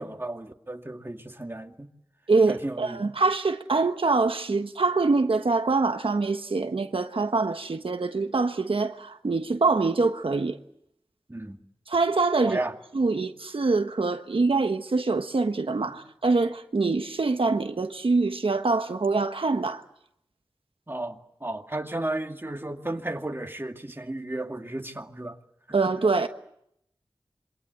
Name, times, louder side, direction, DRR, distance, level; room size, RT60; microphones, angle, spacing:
voice 1, 0.0-1.9 2.5-3.0 11.3-11.6 12.4-12.7 20.9-25.4 25.7-25.8, right 1 dB, 25° right, 2.1 m, -34 dB
voice 2, 2.3-10.6 11.9-12.6 12.9-19.8 25.7-26.3, right 3 dB, 80° right, 1.3 m, -24 dB
27.0 x 24.0 x 8.1 m
wide cardioid pair, 65°, 9 cm